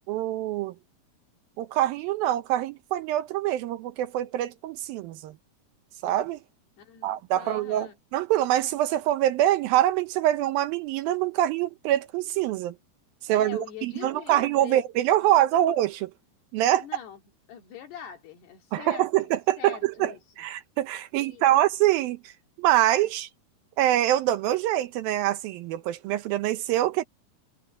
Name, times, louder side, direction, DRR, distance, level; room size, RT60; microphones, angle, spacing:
voice 1, 0.1-0.7 1.6-5.3 6.0-6.4 7.0-12.7 13.2-16.1 16.5-16.8 18.7-20.1 20.4-22.3 22.6-23.3 23.8-27.0, right 13 dB, 75° right, 2.4 m, -25 dB
voice 2, 6.8-8.0 13.3-14.8 15.2-15.6 16.8-17.2 17.5-20.2 21.2-21.6, left 9 dB, 85° left, 4.8 m, -44 dB
omnidirectional pair, 4.6 m